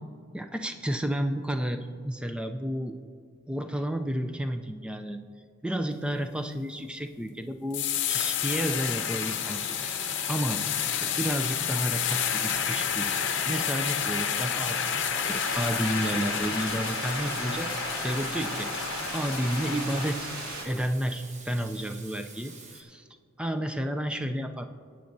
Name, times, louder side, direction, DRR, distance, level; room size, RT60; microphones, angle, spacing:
voice 1, 0.3-3.0 3.5-5.2 5.6-10.7 11.0-17.7 18.0-20.3 20.6-23.1 23.4-24.7, equal, 5° right, 7 dB, 0.3 m, -31 dB
sound 1, 7.7-20.1, left 8 dB, 55° left, 0.8 m, -30 dB
Water tap faucet / Sink (filling or washing), 9.2-22.8, right 4 dB, 30° right, 0.9 m, -48 dB
sound 2, 15.2-20.6, right 2 dB, 85° right, 2.4 m, -37 dB
17.0 x 8.8 x 2.7 m, 2.2 s
head